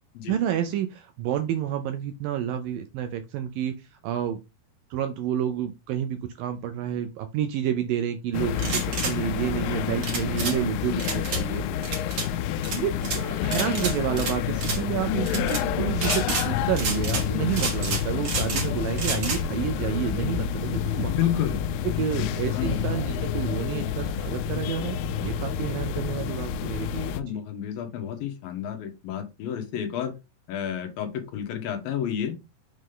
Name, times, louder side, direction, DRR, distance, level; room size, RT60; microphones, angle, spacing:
voice 1, 0.3-4.4 4.9-11.6 12.8-21.2 21.8-27.1, right 10 dB, 80° right, 8 dB, 2.1 m, -29 dB
sound 1, 8.3-27.2, left 9 dB, 85° left, 2.6 m, -28 dB
sound 2, 8.6-9.1 10.0-10.6 11.0-11.4 11.8-12.3 12.6-13.2 13.5-14.3 14.6-14.8 15.3-15.6 16.0-16.5 16.8-17.3 17.5-18.7 19.0-19.4, right 4 dB, 45° right, 2.5 m, -29 dB
voice 2, 21.1-21.6 22.1-22.3 22.5-22.8 27.1-30.1 30.5-32.3, left 9 dB, 70° left, 6 dB, 2.7 m, -30 dB
6.6 x 5.2 x 3.7 m, 0.25 s
omnidirectional pair, 4.6 m